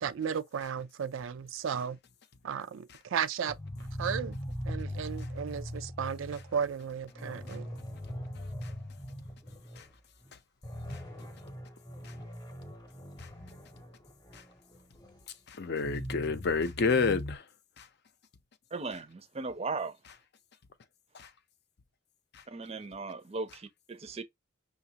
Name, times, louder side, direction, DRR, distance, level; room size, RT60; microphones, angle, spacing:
voice 1, 0.0-2.0 2.4-3.6 4.0-4.4 4.6-7.7, right 7 dB, 85° right, 0.4 m, -34 dB
sound 1, 3.5-9.9 10.2-10.3 10.6-15.2 15.7-17.4, equal, 25° left, 0.9 m, -41 dB
voice 2, 15.5-17.4 17.8-17.9 21.1-21.3, left 4 dB, 55° left, 0.5 m, -30 dB
voice 3, 18.7-20.0 22.5-24.2, right 3 dB, 30° right, 0.5 m, -37 dB
5.7 x 2.3 x 2.8 m
head